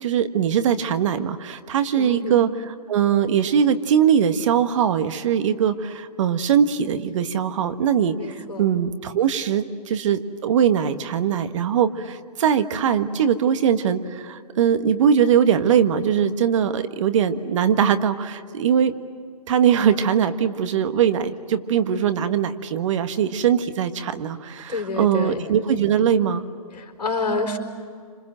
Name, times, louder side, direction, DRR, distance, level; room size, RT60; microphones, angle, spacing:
voice 1, 0.0-18.9 19.5-26.4, right 8 dB, 50° right, 9 dB, 1.6 m, -21 dB
voice 2, 2.0-2.3 8.2-8.6 24.7-25.4 26.8-27.6, left 3 dB, 90° left, 3 dB, 4.3 m, -28 dB
28.0 x 26.5 x 7.7 m, 2.2 s
hypercardioid pair, 135°, 20 cm